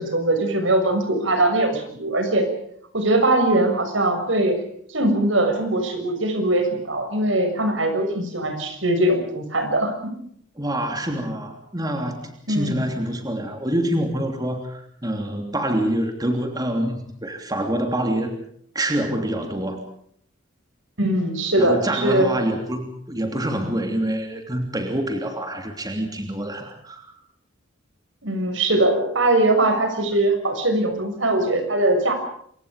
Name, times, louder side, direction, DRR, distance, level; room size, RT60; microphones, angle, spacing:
voice 1, 0.0-2.5 2.9-4.6 4.9-10.1 12.5-12.8 21.0-22.3 28.2-32.1, right 1 dB, 75° right, 6 dB, 6.6 m, -21 dB
voice 2, 10.6-18.4 18.7-19.8 21.6-27.1, right 1 dB, 20° right, 4 dB, 3.1 m, -26 dB
28.0 x 25.0 x 5.2 m, 0.65 s
head